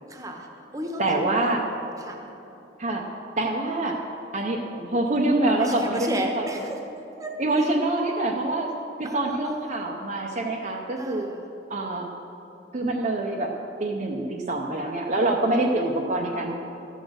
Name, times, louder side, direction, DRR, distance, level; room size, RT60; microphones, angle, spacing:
voice 1, 0.1-0.5 0.7-1.0 2.0-2.3 5.5-6.8 7.2-7.3 9.0-9.6 11.0-11.5 15.4-16.3, right 1 dB, 20° right, 2 dB, 1.1 m, -34 dB
voice 2, 1.0-1.7 2.8-3.0 3.4-4.0 4.3-6.4 7.4-8.7 9.0-11.3 11.7-12.1 12.7-13.5 13.8-16.6, right 2 dB, 40° right, 0 dB, 0.7 m, -25 dB
14.0 x 6.3 x 6.4 m, 2.9 s
head